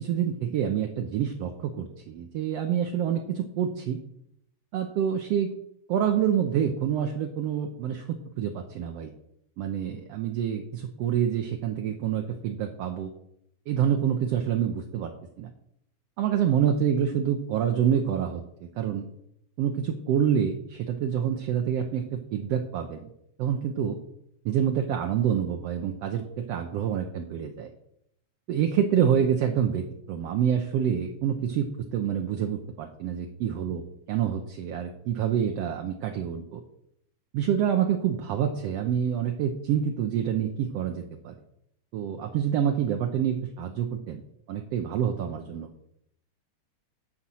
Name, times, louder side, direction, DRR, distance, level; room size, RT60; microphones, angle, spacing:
voice 1, 0.0-4.0 4.7-5.5 5.9-8.1 8.4-9.1 9.6-13.1 13.7-15.1 15.4-15.5 16.2-18.4 18.8-19.0 19.6-22.0 22.3-23.1 23.4-24.0 24.4-27.7 28.5-31.7 31.9-33.8 34.1-36.6 37.3-41.3 41.9-44.2 44.5-45.7, right 9 dB, 70° right, 4 dB, 1.7 m, -27 dB
9.9 x 4.3 x 7.7 m, 0.75 s
omnidirectional pair, 3.3 m